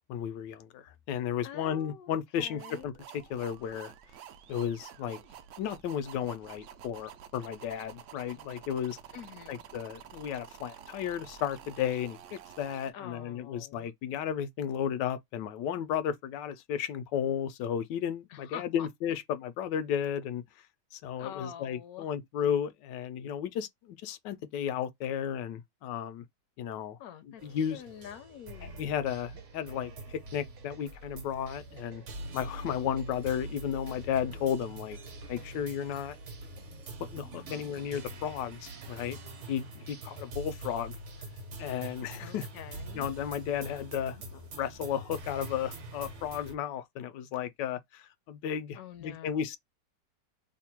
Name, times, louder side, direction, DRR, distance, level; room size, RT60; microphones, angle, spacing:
voice 1, 0.1-3.9 4.5-5.2 5.6-9.0 9.5-20.4 20.9-26.2 26.6-27.0 27.3-27.8 28.8-32.0 32.3-35.0 35.3-36.2 37.1-39.2 39.5-41.0 41.6-42.5 42.9-49.6, left 9 dB, 90° left, 1.3 m, -34 dB
voice 2, 1.4-2.9 9.1-9.6 12.9-13.9 18.3-18.9 21.2-22.1 27.0-28.9 37.3-37.7 42.2-43.1 48.7-49.4, left 10 dB, 70° left, 0.9 m, -46 dB
sound 1, 2.6-12.9, right 9 dB, 80° right, 0.6 m, -50 dB
sound 2, 27.4-46.5, right 2 dB, 50° right, 1.1 m, -44 dB
3.3 x 2.2 x 4.3 m
omnidirectional pair, 1.9 m